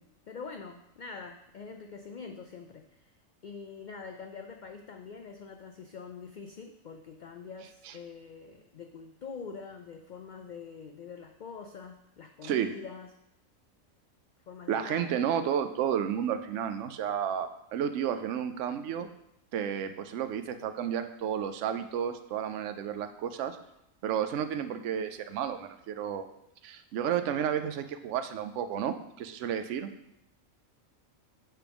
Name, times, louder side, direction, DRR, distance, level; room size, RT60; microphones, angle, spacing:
voice 1, 0.0-3.1 3.4-13.1 14.5-15.1, left 5 dB, 70° left, 5 dB, 0.4 m, -45 dB
voice 2, 12.4-12.7 14.7-19.1 19.5-23.6 24.0-26.3 26.6-29.9, right 9 dB, 70° right, 9 dB, 0.9 m, -32 dB
7.5 x 5.9 x 3.5 m, 0.80 s
omnidirectional pair, 1.4 m